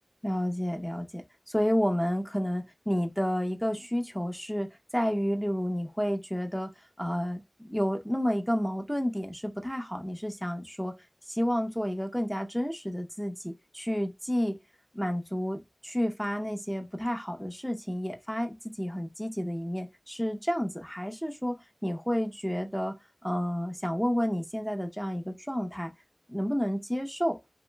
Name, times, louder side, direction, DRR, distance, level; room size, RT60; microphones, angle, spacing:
voice 1, 0.2-6.7 7.0-10.9 11.3-14.6 14.9-23.0 23.2-25.9 26.3-27.4, equal, ahead, 0.6 m, -30 dB
2.9 x 2.8 x 2.2 m
wide cardioid pair, 55°, 0 cm